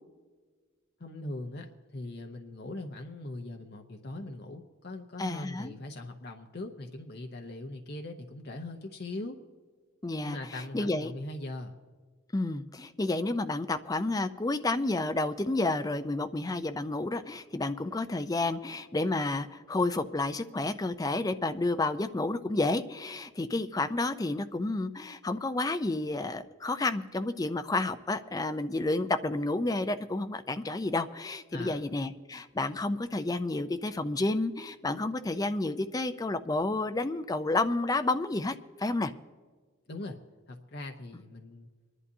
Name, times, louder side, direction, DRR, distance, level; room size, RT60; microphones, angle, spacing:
voice 1, 1.0-9.4 10.2-11.8 31.5-31.8 39.9-40.2 40.5-41.7, left 2 dB, 55° left, 3 dB, 0.8 m, -40 dB
voice 2, 5.2-5.7 10.0-11.1 12.3-39.1, left 2 dB, 20° left, 10 dB, 0.4 m, -30 dB
25.0 x 11.0 x 2.7 m, 1.5 s
head